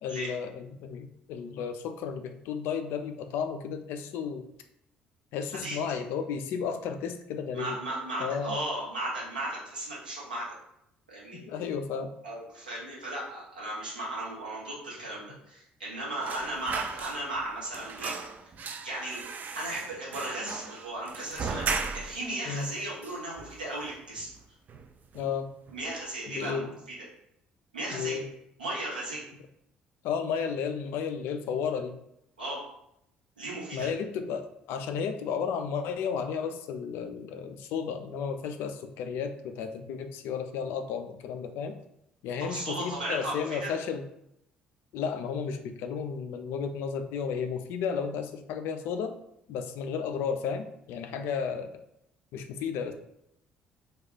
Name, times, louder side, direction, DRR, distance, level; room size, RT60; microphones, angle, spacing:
voice 1, 0.0-4.4 5.3-7.8 8.2-8.6 11.3-12.1 22.5-22.7 25.1-25.5 26.3-26.7 27.9-28.3 30.0-31.9 33.7-41.7 42.2-44.0 44.9-49.1 49.5-51.7 52.3-52.9, left 6 dB, 60° left, 7 dB, 0.3 m, -33 dB
voice 2, 7.5-10.5 11.1-11.4 12.2-18.1 18.6-19.2 19.6-24.3 25.7-27.0 27.7-28.3 28.6-29.2 32.4-32.6 33.4-33.9 42.4-43.7, right 1 dB, 85° right, -6 dB, 0.9 m, -36 dB
sound 1, 16.2-17.5 17.7-22.3 22.6-22.7 23.0-23.8 24.2-24.4 24.7-25.4 25.7-25.9, right 5 dB, 40° right, 0.3 m, -37 dB
2.3 x 2.3 x 3.6 m, 0.78 s
figure-of-eight pair, 50°, 4 cm